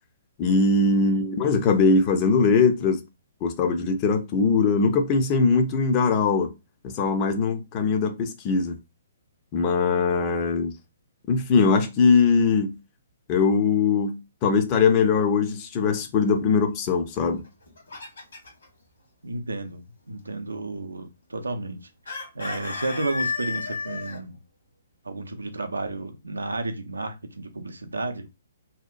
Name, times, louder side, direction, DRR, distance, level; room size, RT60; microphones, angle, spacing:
voice 1, 0.4-3.0 3.4-6.5 6.8-8.8 9.5-10.7 11.3-12.8 13.3-17.4, left 4 dB, 30° left, 0.4 m, -21 dB
Chicken rooster, 17.4-18.7 22.1-24.2, left 4 dB, 65° left, 1.1 m, -32 dB
voice 2, 19.2-24.4 25.0-28.3, right 2 dB, 75° right, 0.4 m, -32 dB
2.8 x 2.1 x 2.4 m
figure-of-eight pair, 125°, 0 cm